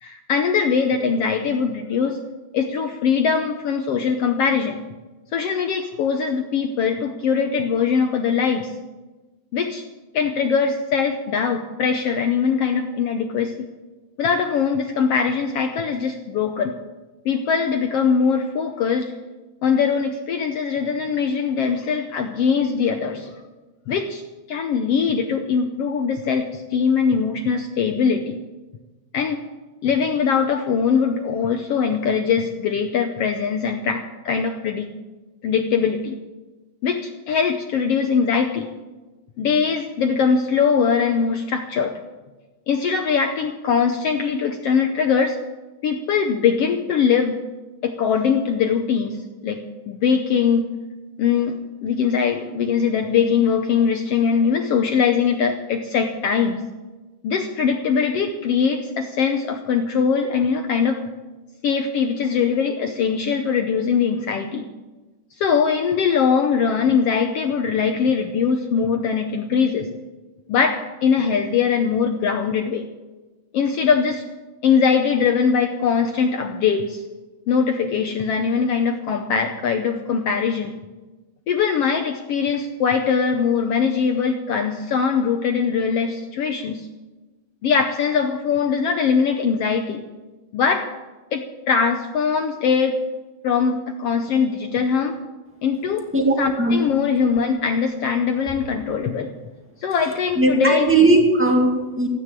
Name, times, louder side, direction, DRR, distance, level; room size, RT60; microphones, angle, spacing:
voice 1, 0.0-2.2 2.5-4.8 5.3-8.7 9.5-9.9 10.1-13.7 14.2-16.7 17.2-19.1 19.6-23.3 23.9-24.2 24.5-28.4 29.1-29.4 29.8-34.9 35.4-36.2 36.8-38.7 39.4-41.9 42.7-45.4 45.8-47.4 47.8-50.7 51.2-56.6 57.2-61.0 61.6-64.7 65.4-69.9 70.5-72.8 73.5-74.2 74.6-77.0 77.5-80.8 81.5-86.9 87.6-90.0 90.5-90.9 91.3-92.9 93.4-95.2 95.6-96.1 96.4-99.3 99.8-100.8, left 6 dB, 80° left, 5 dB, 1.4 m, -21 dB
voice 2, 96.1-96.8 100.4-102.1, right 2 dB, 5° right, 1 dB, 1.4 m, -17 dB
15.5 x 9.8 x 7.5 m, 1.2 s
omnidirectional pair, 3.7 m